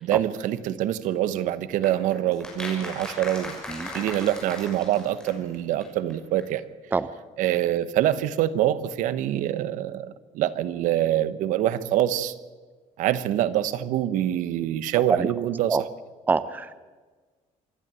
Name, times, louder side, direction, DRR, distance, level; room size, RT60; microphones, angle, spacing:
voice 1, 0.0-3.6 3.9-6.6 7.4-12.3 13.0-15.8, right 12 dB, 80° right, 15 dB, 1.1 m, -25 dB
sound 1, 1.8-5.6 5.8-5.9 6.1-6.2 6.4-6.5, left 1 dB, 5° left, 6.3 m, -37 dB
voice 2, 16.3-16.8, right 4 dB, 15° right, 15 dB, 0.6 m, -25 dB
26.0 x 12.5 x 9.0 m, 1.4 s
cardioid pair, 155°, 13 cm